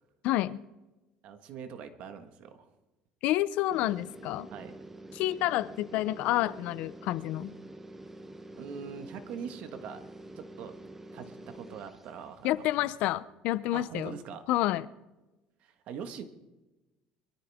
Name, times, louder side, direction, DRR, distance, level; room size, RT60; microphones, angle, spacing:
voice 1, 0.2-0.6 3.2-4.5 5.1-7.6 12.4-14.1 14.5-14.9, left 15 dB, 70° left, 17 dB, 0.6 m, -29 dB
voice 2, 1.2-2.7 4.5-4.7 8.6-10.1 10.3-10.8 11.1-12.5 13.7-14.4 15.6-16.2, right 7 dB, 60° right, 8 dB, 1.6 m, -42 dB
sound 1, 3.7-12.5, right 1 dB, 15° right, 0.9 m, -47 dB
23.0 x 13.5 x 3.6 m, 1.1 s
cardioid pair, 140°, 2 cm